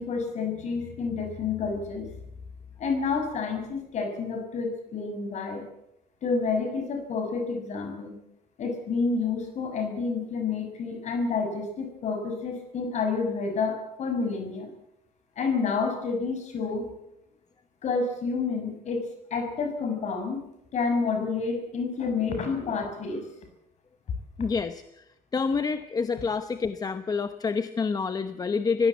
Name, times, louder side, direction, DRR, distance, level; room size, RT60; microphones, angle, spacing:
voice 1, 0.0-2.1 2.8-5.6 6.2-8.2 8.6-14.7 15.4-16.8 17.8-19.0 19.3-20.4 20.7-23.2, left 4 dB, 45° left, 5 dB, 6.5 m, -29 dB
voice 2, 24.4-25.0 25.3-28.9, left 5 dB, 25° left, 10 dB, 0.9 m, -27 dB
23.5 x 17.5 x 8.3 m, 0.82 s
cardioid pair, 175°, 16 cm